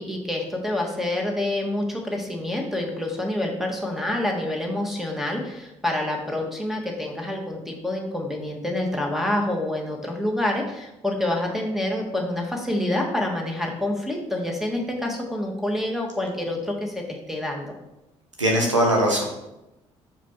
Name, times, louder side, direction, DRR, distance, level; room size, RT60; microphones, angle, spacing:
voice 1, 0.0-17.7, left 1 dB, ahead, 1 dB, 1.5 m, -27 dB
voice 2, 18.4-19.2, right 1 dB, 85° right, 0 dB, 0.9 m, -20 dB
5.4 x 5.0 x 4.4 m, 0.94 s
figure-of-eight pair, 45°, 15 cm